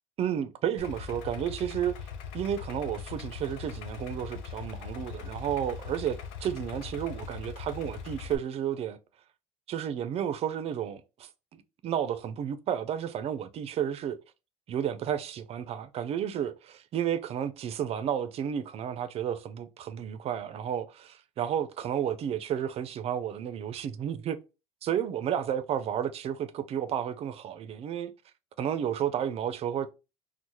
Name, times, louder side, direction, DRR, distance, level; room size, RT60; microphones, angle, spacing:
voice 1, 0.2-2.1 2.3-9.0 9.7-14.2 14.7-24.4 24.8-28.1 28.6-29.9, right 9 dB, 45° right, 0.4 m, -32 dB
Idling, 0.8-8.4, left 7 dB, 90° left, 0.5 m, -41 dB
4.5 x 2.0 x 2.7 m
supercardioid pair, 100°, 14 cm